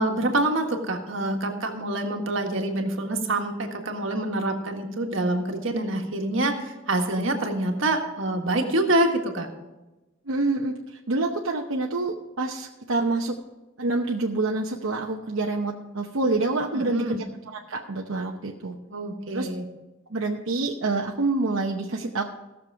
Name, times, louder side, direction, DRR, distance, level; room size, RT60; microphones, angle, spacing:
voice 1, 0.0-9.5 16.7-17.2 18.9-19.6, right 1 dB, 75° right, 3 dB, 1.7 m, -26 dB
voice 2, 10.3-13.4 13.8-17.2 17.5-18.8 19.3-19.5 20.1-22.3, right 3 dB, 90° right, 0 dB, 0.9 m, -27 dB
16.5 x 6.7 x 4.7 m, 1.1 s
head